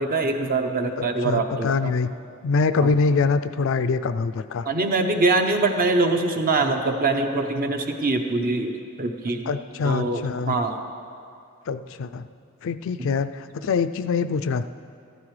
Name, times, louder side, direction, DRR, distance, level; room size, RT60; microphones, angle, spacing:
voice 1, 0.0-1.9 4.6-8.7 9.0-9.5 9.8-10.7, right 3 dB, 45° right, 5 dB, 0.8 m, -23 dB
voice 2, 1.2-2.1 2.4-4.7 9.5-10.6 11.7-12.2 12.6-14.6, left 4 dB, 65° left, 11 dB, 0.4 m, -24 dB
14.0 x 12.0 x 3.2 m, 2.5 s
head